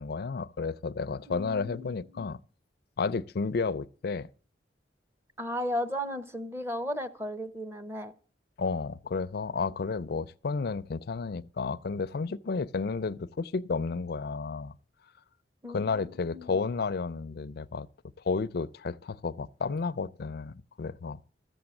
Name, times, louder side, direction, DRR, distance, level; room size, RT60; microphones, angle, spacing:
voice 1, 0.0-2.4 3.0-4.3 8.6-14.7 15.7-17.9 18.2-21.2, left 4 dB, 60° left, 0.5 m, -32 dB
voice 2, 1.3-2.3 5.4-8.1 15.6-16.6, equal, 15° right, 0.9 m, -35 dB
13.5 x 7.1 x 7.7 m
head